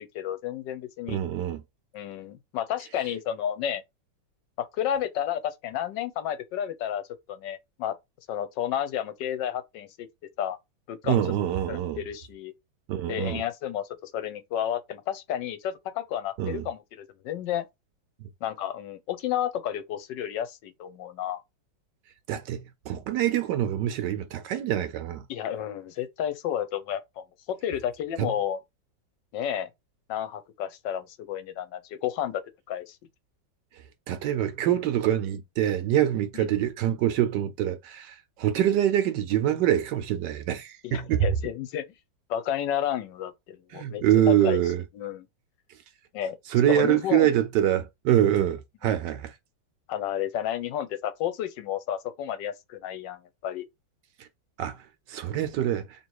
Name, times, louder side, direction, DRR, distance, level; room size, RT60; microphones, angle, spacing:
voice 1, 0.0-1.2 1.9-3.8 4.6-7.0 7.3-7.9 8.3-10.1 10.4-10.6 10.9-11.2 11.7-12.5 13.1-17.7 18.4-21.4 25.3-28.6 29.3-29.7 30.1-32.4 32.7-33.0 36.3-36.5 40.8-41.8 42.3-44.6 44.9-45.2 46.1-46.4 46.7-47.3 49.9-53.6, left 10 dB, 75° left, 1.2 m, -31 dB
voice 2, 1.1-1.6 11.0-12.0 12.9-13.4 16.4-16.7 18.2-18.3 22.3-25.2 28.2-28.3 34.1-41.3 43.7-44.8 46.5-49.3 54.6-54.8 55.1-55.9, right 11 dB, 70° right, 1.2 m, -25 dB
3.0 x 2.9 x 4.5 m
omnidirectional pair, 2.1 m